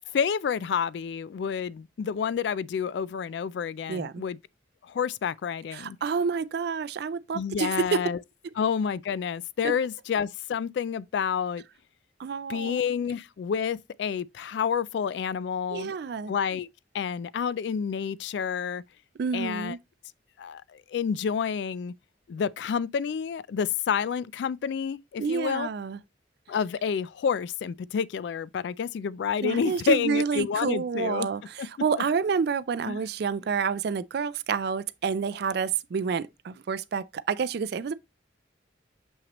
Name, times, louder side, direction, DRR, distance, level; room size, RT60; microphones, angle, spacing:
voice 1, 0.1-4.4 4.8-6.0 7.3-8.2 8.6-11.6 12.5-15.9 16.3-16.7 16.9-18.8 19.3-19.8 20.4-21.9 22.3-25.7 26.5-31.3 31.6-31.7 32.9-33.0, left 7 dB, 65° left, 0.3 m, -29 dB
voice 2, 3.9-4.2 5.7-8.0 12.2-12.8 15.7-16.3 19.2-19.8 25.2-26.0 29.4-37.9, right 6 dB, 60° right, 0.4 m, -29 dB
6.4 x 5.9 x 2.9 m
head